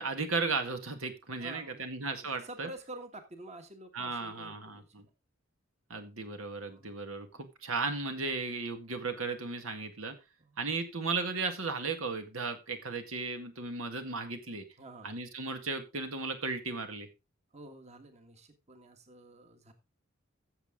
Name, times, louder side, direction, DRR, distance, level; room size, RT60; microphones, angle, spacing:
voice 1, 0.0-2.7 3.9-5.0 5.9-10.2 10.6-14.7 15.0-17.1, right 4 dB, 80° right, 7 dB, 1.9 m, -35 dB
voice 2, 1.3-1.8 2.2-4.9 6.7-6.9 10.4-10.6 14.8-15.2 17.5-19.7, right 2 dB, 30° right, 6 dB, 1.6 m, -49 dB
15.0 x 7.2 x 3.7 m, 0.26 s
head